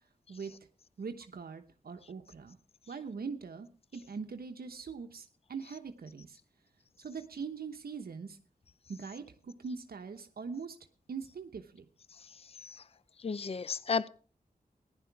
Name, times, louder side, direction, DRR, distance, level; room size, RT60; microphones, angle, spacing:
voice 1, 1.0-2.6 2.9-6.4 7.0-8.4 8.9-10.8 11.1-11.9, right 5 dB, 80° right, 1.0 m, -42 dB
voice 2, 13.2-14.1, left 5 dB, 40° left, 0.5 m, -33 dB
15.0 x 11.0 x 4.7 m
wide cardioid pair, 85°, 15 cm